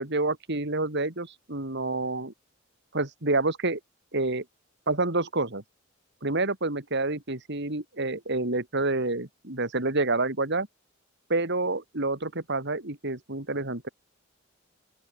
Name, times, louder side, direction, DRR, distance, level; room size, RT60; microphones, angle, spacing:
voice 1, 0.0-2.3 2.9-3.8 4.1-4.4 4.9-5.6 6.2-10.7 11.3-13.9, right 2 dB, 60° right, 3.7 m, -28 dB
open air
head